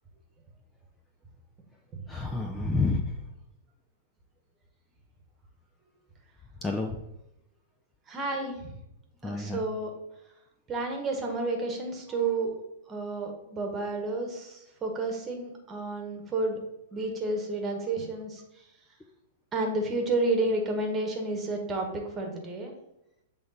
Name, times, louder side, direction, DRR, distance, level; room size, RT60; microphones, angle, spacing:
voice 1, 2.1-3.2 6.6-7.0 9.2-9.6 12.1-12.3, left 3 dB, 10° left, 2 dB, 0.5 m, -30 dB
voice 2, 8.1-8.7 9.2-9.9 10.7-12.6 12.9-16.6 16.9-18.4 19.5-22.7, right 2 dB, 20° right, 3 dB, 1.4 m, -31 dB
7.8 x 3.6 x 4.1 m, 0.86 s
figure-of-eight pair, 105°, 0 cm